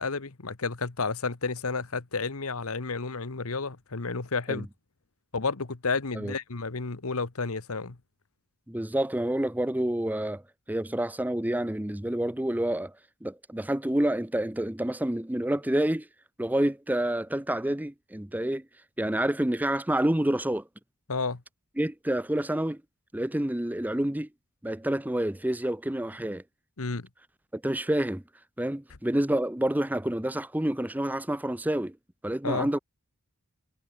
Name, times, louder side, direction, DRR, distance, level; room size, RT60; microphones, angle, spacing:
voice 1, 0.0-4.7 5.3-8.0 21.1-21.4 26.8-27.0 32.4-32.7, left 4 dB, 80° left, 1.3 m, -31 dB
voice 2, 8.7-10.4 10.7-12.9 13.2-16.1 16.4-18.7 19.0-20.6 21.8-22.8 23.1-24.3 24.6-26.4 27.5-28.2 28.6-32.0 32.2-32.8, right 1 dB, 10° right, 0.7 m, -28 dB
head